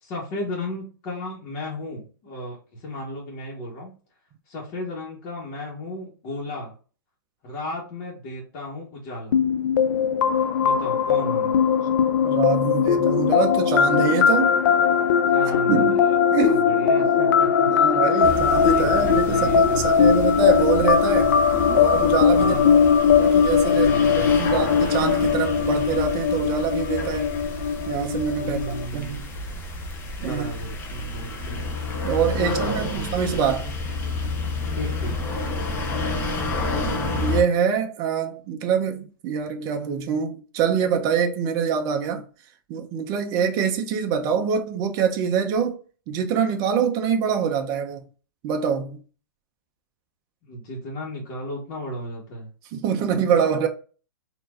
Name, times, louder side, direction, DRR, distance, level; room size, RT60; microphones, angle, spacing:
voice 1, 0.0-3.9 4.5-6.7 7.4-9.4 10.6-11.6 15.3-15.9 16.5-18.2 18.7-20.2 22.3-22.9 23.6-24.5 28.4-29.2 30.2-31.6 32.4-33.0 34.7-35.2 50.4-52.5, equal, 35° left, 1.2 m, -34 dB
sound 1, 9.3-28.8, left 7 dB, 65° left, 0.4 m, -20 dB
voice 2, 12.2-14.5 15.7-16.0 16.3-16.7 17.6-21.4 21.7-22.8 23.2-27.3 27.9-29.3 30.2-30.5 32.0-33.8 37.2-42.3 42.7-45.8 46.1-48.0 48.4-49.0 52.7-53.7, right 7 dB, 30° right, 0.6 m, -25 dB
sound 2, 18.2-37.4, left 2 dB, 20° left, 0.6 m, -30 dB
4.3 x 2.6 x 2.4 m
hypercardioid pair, 140°, 11 cm